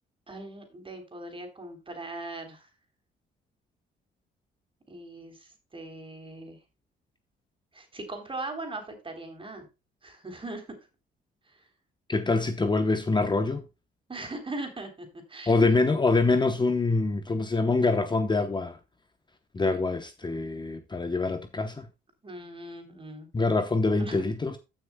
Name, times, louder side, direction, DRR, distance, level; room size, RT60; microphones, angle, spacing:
voice 1, 0.3-2.7 4.9-6.6 7.7-9.7 10.0-10.9 11.5-11.7 14.1-15.9 22.2-23.3 24.0-24.3, right 2 dB, 25° right, 3.5 m, -40 dB
voice 2, 12.1-13.6 15.5-18.8 19.5-21.9 23.3-24.6, left 3 dB, 20° left, 0.9 m, -25 dB
15.5 x 6.3 x 2.2 m
cardioid pair, 90°, 20 cm